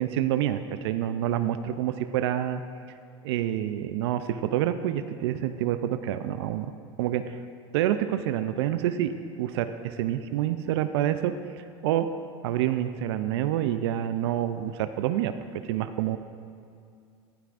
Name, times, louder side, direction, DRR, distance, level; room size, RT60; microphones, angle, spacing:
voice 1, 0.0-2.6 3.2-6.7 7.0-7.4 7.7-9.1 9.4-11.3 11.8-12.1 12.4-16.2, right 11 dB, 75° right, 10 dB, 0.5 m, -27 dB
14.5 x 11.5 x 2.5 m, 2.4 s
hypercardioid pair, 95°, 14 cm